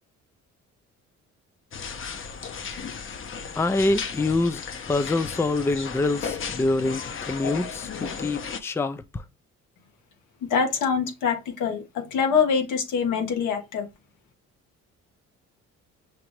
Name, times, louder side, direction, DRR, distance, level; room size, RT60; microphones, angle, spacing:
sound 1, 1.7-8.6, left 6 dB, 45° left, 0.7 m, -35 dB
voice 1, 3.6-4.6 4.9-9.2, left 2 dB, 10° left, 0.4 m, -25 dB
voice 2, 10.4-13.9, left 6 dB, 85° left, 1.3 m, -24 dB
5.8 x 2.6 x 3.0 m
cardioid pair, 90°, 30 cm